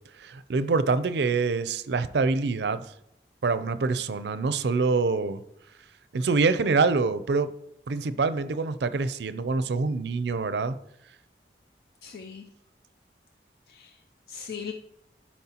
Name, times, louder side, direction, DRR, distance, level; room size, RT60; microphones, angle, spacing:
voice 1, 0.1-2.9 3.4-5.4 6.1-7.5 7.9-10.8, right 4 dB, 75° right, 13 dB, 0.4 m, -25 dB
voice 2, 12.0-12.5 13.7-14.7, left 6 dB, 55° left, 6 dB, 0.4 m, -40 dB
12.0 x 4.4 x 2.9 m, 0.78 s
head